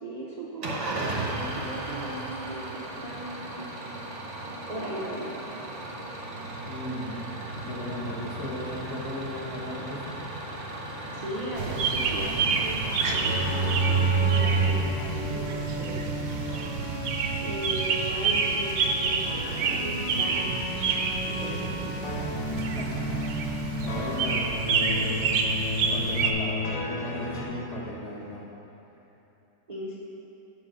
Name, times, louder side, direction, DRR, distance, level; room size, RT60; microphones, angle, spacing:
voice 1, 0.0-3.8 4.7-5.4 11.1-16.1 17.4-22.1 29.7-30.0, right 1 dB, 85° right, -6 dB, 0.3 m, -37 dB
Engine starting / Idling, 0.6-14.8, right 1 dB, 30° right, 0.8 m, -36 dB
voice 2, 6.7-7.2 7.7-10.2 22.5-23.1 23.8-25.6 25.9-28.4, left 1 dB, 50° left, -4 dB, 1.3 m, -36 dB
sound 1, 11.6-26.3, right 5 dB, 65° right, 0.7 m, -28 dB
sound 2, 13.1-27.4, right 1 dB, 75° left, 1.6 m, -31 dB
6.2 x 4.9 x 6.7 m, 3.0 s
omnidirectional pair, 1.8 m